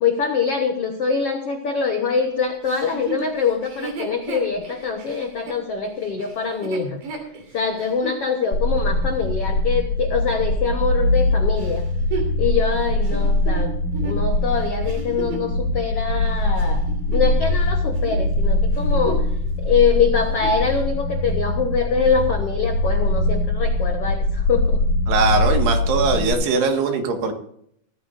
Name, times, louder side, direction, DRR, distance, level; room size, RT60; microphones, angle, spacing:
voice 1, 0.0-7.0 7.5-11.8 12.4-13.7 14.0-19.2 19.6-24.8, left 6 dB, 80° left, 4 dB, 1.3 m, -24 dB
Chuckle chortle, 2.6-8.2 8.8-8.9 11.6-15.5 16.2-17.6 17.9-18.2 18.7-19.4 19.7-19.8 20.2-20.7 21.3-21.4, right 4 dB, 60° right, 4.6 m, -34 dB
sound 1, 8.5-26.3, left 1 dB, 45° left, 4.1 m, -22 dB
voice 2, 25.1-27.3, right 4 dB, 85° right, 4 dB, 4.0 m, -20 dB
17.0 x 14.5 x 2.6 m, 0.70 s
omnidirectional pair, 4.6 m